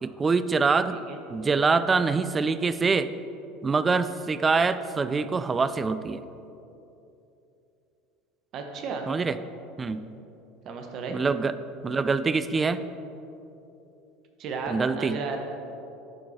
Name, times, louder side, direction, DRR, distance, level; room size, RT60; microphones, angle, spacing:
voice 1, 0.0-1.0 1.3-3.1 3.6-6.2 9.1-9.4 9.8-10.1 11.1-11.6 11.8-12.8 14.7-15.2, right 4 dB, 25° right, 13 dB, 0.4 m, -25 dB
voice 2, 0.9-1.2 8.5-9.1 10.6-11.2 14.4-15.4, right 4 dB, 50° right, 4 dB, 0.9 m, -34 dB
10.5 x 4.6 x 4.2 m, 2.8 s
hypercardioid pair, 75°, 0 cm